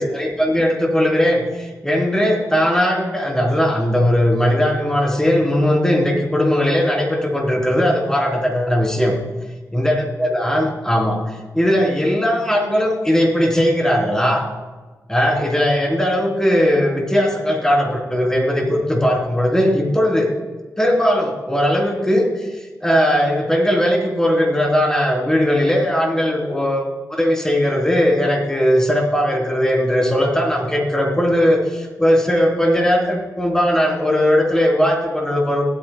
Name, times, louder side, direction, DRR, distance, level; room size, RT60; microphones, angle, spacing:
voice 1, 0.0-9.1 9.7-14.5 15.1-20.3 20.8-26.8 27.1-35.7, equal, 10° left, 0 dB, 3.4 m, -18 dB
19.5 x 9.4 x 2.3 m, 1.3 s
cardioid pair, 60°, 6 cm